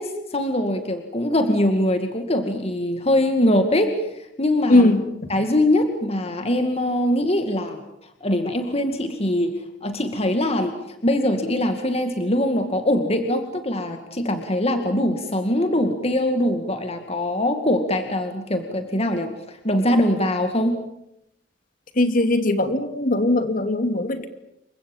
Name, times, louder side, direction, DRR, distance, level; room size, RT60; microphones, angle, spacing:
voice 1, 0.0-4.9 5.3-9.5 9.8-20.8, left 1 dB, 35° left, 6 dB, 2.2 m, -22 dB
voice 2, 4.7-5.0 22.0-24.3, left 1 dB, 50° left, 8 dB, 2.8 m, -19 dB
29.0 x 24.5 x 7.4 m, 0.81 s
head